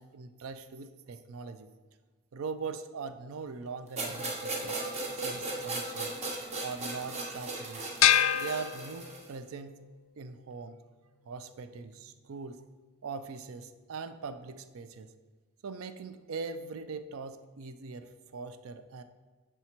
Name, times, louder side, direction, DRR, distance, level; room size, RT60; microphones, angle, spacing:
voice 1, 0.0-1.7 2.3-4.8 5.2-6.1 6.6-7.9 8.3-9.8 10.2-10.8 11.3-12.6 13.0-15.1 15.6-19.0, right 4 dB, 75° right, 11 dB, 0.4 m, -41 dB
sound 1, 4.0-9.3, right 2 dB, 30° right, 0.8 m, -37 dB
sound 2, 8.0-9.5, left 11 dB, 75° left, 0.3 m, -26 dB
7.2 x 3.4 x 4.4 m, 1.3 s
head